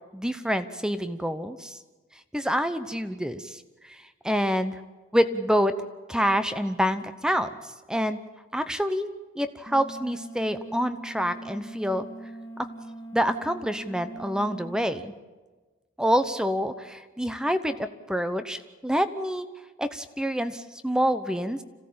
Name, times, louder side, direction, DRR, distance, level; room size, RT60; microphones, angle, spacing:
voice 1, 0.1-1.8 2.3-4.8 5.1-5.8 6.1-8.2 8.5-9.1 9.3-12.1 13.1-15.1 16.0-19.5 19.8-21.6, equal, 5° right, 11 dB, 0.8 m, -27 dB
sound 1, 9.7-14.8, right 2 dB, 10° left, 1.8 m, -41 dB
26.5 x 16.5 x 8.7 m, 1.3 s
head